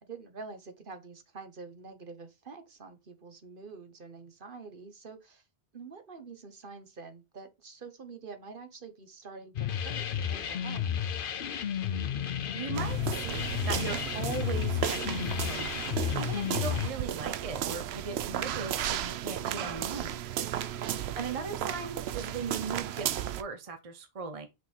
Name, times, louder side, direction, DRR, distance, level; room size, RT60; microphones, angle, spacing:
voice 1, 0.0-5.4 5.7-10.9 20.6-21.0, right 4 dB, 55° right, 1.3 m, -47 dB
sound 1, 9.6-16.9, left 9 dB, 60° left, 0.8 m, -32 dB
voice 2, 12.5-13.0 13.2-15.8 16.1-20.2 21.2-24.5, right 4 dB, 35° right, 0.8 m, -38 dB
sound 2, 12.7-23.4, right 11 dB, 80° right, 0.8 m, -34 dB
6.2 x 3.8 x 4.5 m
omnidirectional pair, 1.1 m